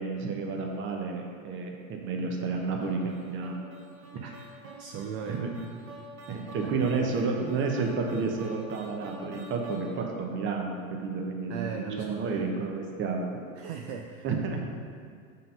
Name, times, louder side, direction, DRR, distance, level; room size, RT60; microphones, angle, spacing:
voice 1, 0.0-3.5 5.3-5.5 6.3-13.2 14.2-14.6, right 4 dB, 30° right, 2 dB, 0.9 m, -31 dB
sound 1, 2.8-10.2, right 2 dB, 70° right, 0.9 m, -47 dB
voice 2, 4.8-5.5 6.6-6.9 11.5-12.5 13.6-14.3, right 6 dB, 50° right, 3 dB, 0.5 m, -38 dB
5.6 x 3.8 x 5.4 m, 2.1 s
hypercardioid pair, 90°, 43 cm